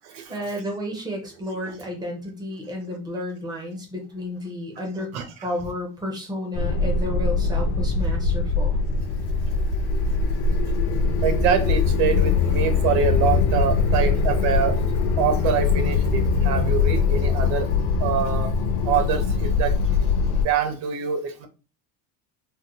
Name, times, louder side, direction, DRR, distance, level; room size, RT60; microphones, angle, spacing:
voice 1, 0.3-8.8, left 1 dB, 10° right, 0.4 m, -32 dB
sound 1, 6.5-20.4, left 4 dB, 45° left, 0.5 m, -22 dB
voice 2, 11.2-14.8 15.2-17.7 18.0-18.5 18.8-19.8 20.3-21.5, right 7 dB, 85° right, 1.0 m, -25 dB
3.6 x 2.1 x 2.9 m
cardioid pair, 175°, 44 cm